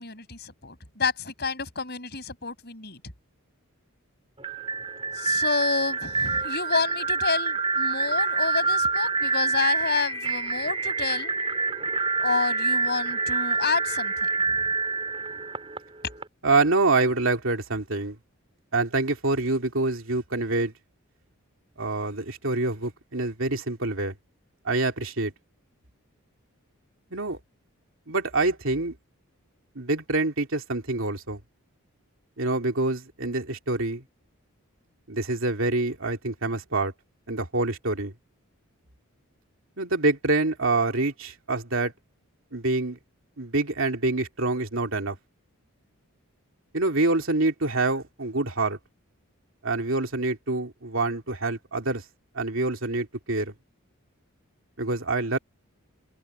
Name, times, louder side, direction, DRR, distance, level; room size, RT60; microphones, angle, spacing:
voice 1, 0.0-3.0 5.1-11.3 12.2-14.6, left 4 dB, 45° left, 6.0 m, -29 dB
sound 1, 4.4-16.2, right 4 dB, 25° right, 4.1 m, -27 dB
voice 2, 16.4-18.2 18.7-20.7 21.8-24.1 24.6-25.3 27.1-27.4 28.1-28.9 29.7-31.4 32.4-34.0 35.1-36.9 37.3-38.1 39.8-41.9 42.5-43.0 43.4-45.2 46.7-48.8 49.6-52.0 52.3-53.5 54.8-55.4, right 2 dB, 60° right, 2.9 m, -26 dB
head